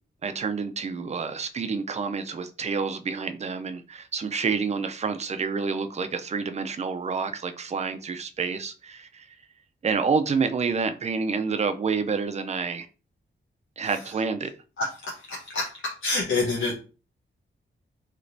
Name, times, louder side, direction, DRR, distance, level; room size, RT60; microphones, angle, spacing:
voice 1, 0.2-9.4 9.8-12.9 13.8-14.5, right 5 dB, 35° right, 0.4 m, -28 dB
voice 2, 14.8-16.7, left 3 dB, 80° left, 0.8 m, -28 dB
3.2 x 2.9 x 2.6 m
wide cardioid pair, 110°, 20 cm